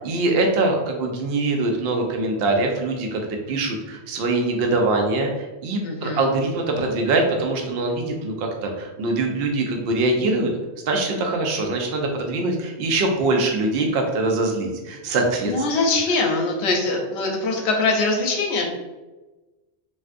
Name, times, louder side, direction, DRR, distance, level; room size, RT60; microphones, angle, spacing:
voice 1, 0.0-3.2 3.5-10.5 10.9-15.5, right 2 dB, 65° right, 2 dB, 0.7 m, -23 dB
voice 2, 5.8-6.2 15.4-18.6, left 3 dB, 75° left, 1 dB, 0.9 m, -22 dB
3.3 x 2.5 x 2.4 m, 1.1 s
omnidirectional pair, 1.2 m